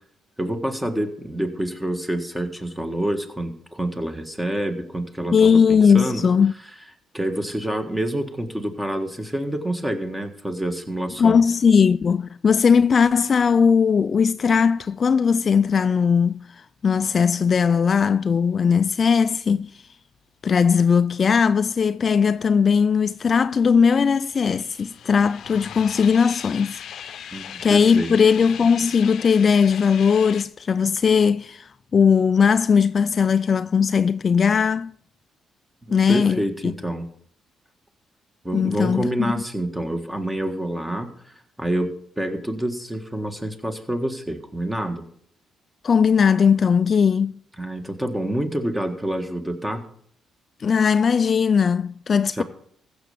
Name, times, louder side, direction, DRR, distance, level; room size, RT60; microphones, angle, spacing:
voice 1, 0.4-6.3 7.1-11.4 27.3-28.1 35.9-37.1 38.4-41.9 42.2-45.1 47.6-49.9 52.4-52.5, right 1 dB, 10° right, 1.7 m, -27 dB
voice 2, 5.3-6.5 11.2-16.5 16.8-19.8 20.4-26.8 27.6-34.9 35.9-36.7 38.5-39.3 45.8-47.4 50.6-52.4, left 6 dB, 45° left, 0.3 m, -19 dB
sound 1, 23.5-30.5, left 9 dB, 70° left, 0.7 m, -39 dB
15.0 x 6.8 x 5.0 m
cardioid pair, 90°, 0 cm